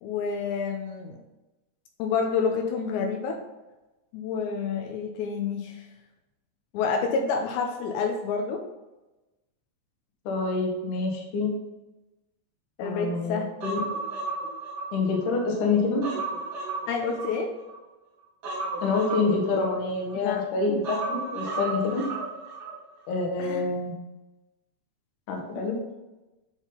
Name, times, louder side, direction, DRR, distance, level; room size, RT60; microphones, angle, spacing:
voice 1, 0.0-1.2 2.0-3.4 4.1-5.8 6.7-8.6 12.8-13.5 16.9-17.5 20.2-20.4 23.4-23.6, left 5 dB, 85° left, 3 dB, 2.8 m, -28 dB
voice 2, 10.3-11.5 12.8-13.8 14.9-16.1 18.8-22.1 23.1-23.9 25.3-25.8, left 3 dB, 65° left, 0 dB, 2.0 m, -27 dB
Human voice, 13.6-15.4 15.8-17.8 18.4-20.2 20.8-22.8 23.1-23.2, right 3 dB, 85° right, 1.2 m, -34 dB
11.0 x 3.7 x 3.8 m, 1.1 s
omnidirectional pair, 5.2 m